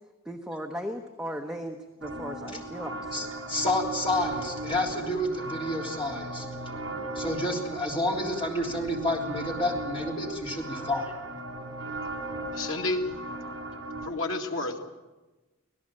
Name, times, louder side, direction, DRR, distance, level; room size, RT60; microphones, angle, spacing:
voice 1, 0.2-3.3, equal, 5° right, 1 dB, 1.0 m, -37 dB
sound 1, 2.0-14.1, right 2 dB, 75° right, 3.8 m, -37 dB
voice 2, 3.1-6.5 7.2-11.1, left 1 dB, 25° left, -1 dB, 3.5 m, -29 dB
voice 3, 12.5-13.1 14.0-14.8, left 2 dB, 75° left, 2 dB, 2.3 m, -30 dB
25.5 x 17.0 x 7.6 m, 1.2 s
head